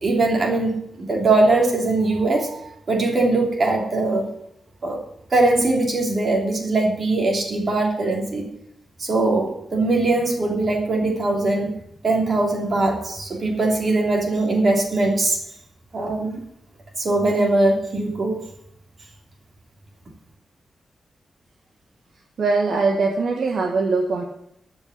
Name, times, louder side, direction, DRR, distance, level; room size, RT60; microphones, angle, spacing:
voice 1, 0.0-4.3 4.8-5.0 5.3-8.4 9.0-11.7 12.0-15.4 15.9-16.4 17.0-18.4, right 2 dB, 40° right, -1 dB, 3.1 m, -21 dB
voice 2, 22.4-24.2, right 3 dB, 60° right, 0 dB, 1.7 m, -21 dB
13.5 x 5.8 x 8.3 m, 0.74 s
wide cardioid pair, 175°, 0 cm